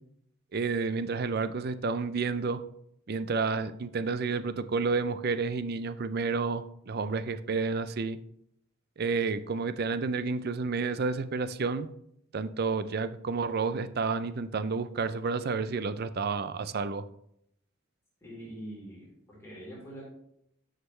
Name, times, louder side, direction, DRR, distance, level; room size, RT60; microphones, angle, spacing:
voice 1, 0.5-2.6 3.1-8.2 9.0-11.9 12.3-17.0, right 4 dB, 50° right, 13 dB, 0.5 m, -30 dB
voice 2, 18.2-20.1, right 1 dB, 15° left, -7 dB, 3.8 m, -44 dB
11.0 x 6.7 x 3.3 m, 0.75 s
head